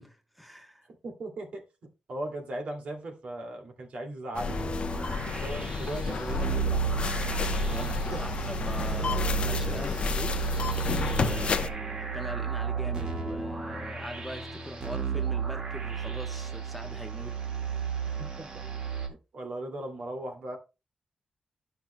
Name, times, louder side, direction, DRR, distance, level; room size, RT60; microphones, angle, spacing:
voice 1, 0.0-0.9 4.9-5.3 7.6-10.5 10.7-18.0, equal, ahead, 1.1 m, -42 dB
voice 2, 1.0-1.6 2.1-4.6 5.3-7.0 8.1-8.2 18.0-18.5 19.1-20.6, right 1 dB, 65° right, 2.4 m, -38 dB
sound 1, 4.3-11.7, left 5 dB, 55° left, 0.7 m, -31 dB
sound 2, 4.5-19.1, right 6 dB, 45° right, 1.9 m, -33 dB
12.5 x 5.9 x 2.2 m
wide cardioid pair, 135°, 2 cm